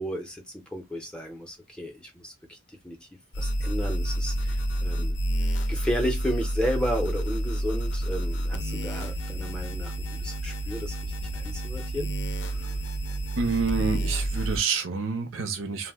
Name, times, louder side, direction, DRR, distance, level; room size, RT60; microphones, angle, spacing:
voice 1, 0.0-3.1 3.4-5.2 5.7-12.1, equal, 5° left, 0.5 m, -33 dB
sound 1, 3.3-14.6, right 1 dB, 65° left, 0.5 m, -29 dB
voice 2, 13.4-15.9, right 5 dB, 90° right, 0.6 m, -28 dB
2.5 x 2.0 x 3.4 m
head